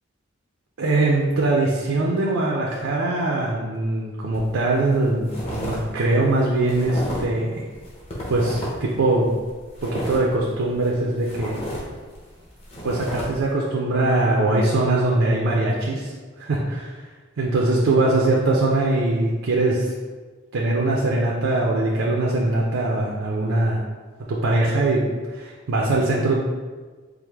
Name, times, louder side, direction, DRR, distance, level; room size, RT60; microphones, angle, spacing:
voice 1, 0.8-7.6 8.3-9.3 9.8-11.6 12.8-16.9 17.4-19.9 20.5-23.8 24.3-25.0 25.3-26.3, right 2 dB, 75° right, -3 dB, 0.5 m, -22 dB
sound 1, 4.3-4.6 4.9-5.8 6.1-7.4 7.7-8.9 9.3-10.9 11.2-13.2, equal, 30° left, 0.8 m, -32 dB
4.6 x 2.1 x 3.4 m, 1.4 s
head